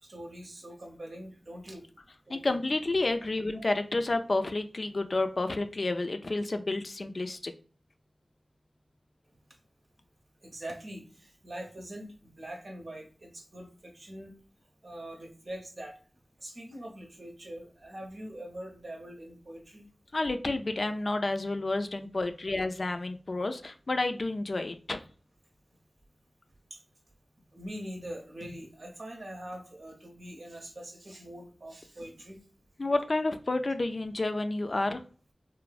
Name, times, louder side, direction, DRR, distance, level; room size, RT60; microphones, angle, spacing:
voice 1, 0.0-1.8 2.3-2.4 3.5-3.7 10.4-14.3 14.8-16.0 16.4-19.8 26.7-26.8 27.5-32.4, right 1 dB, 65° right, 1 dB, 0.8 m, -43 dB
voice 2, 2.3-7.5 20.1-25.0 32.8-35.0, left 2 dB, 60° left, 8 dB, 0.3 m, -30 dB
3.0 x 2.0 x 2.4 m, 0.40 s
cardioid pair, 40°, 0 cm